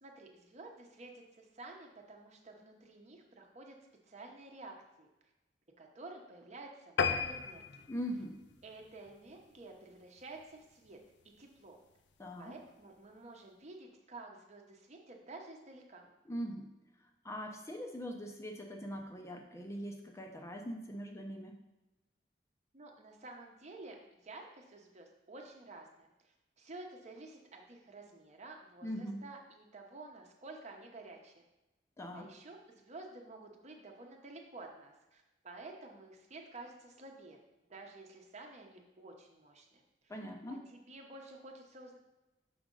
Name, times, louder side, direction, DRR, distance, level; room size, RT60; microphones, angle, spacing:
voice 1, 0.0-3.7 4.1-5.1 5.8-7.9 8.6-11.0 11.4-11.8 12.4-16.1 22.7-31.4 32.1-37.4 37.7-40.2 40.5-42.0, right 2 dB, 40° right, 2 dB, 0.9 m, -51 dB
sound 1, 7.0-9.7 10.2-10.4 10.8-10.9 11.2-11.3 11.6-11.7, left 5 dB, 90° left, 0.5 m, -36 dB
voice 2, 7.9-8.4 12.2-12.5 16.3-16.7 17.2-21.6 28.8-29.2 32.0-32.3 40.1-40.6, equal, 15° left, 2 dB, 0.6 m, -41 dB
6.2 x 5.1 x 3.8 m, 1.0 s
head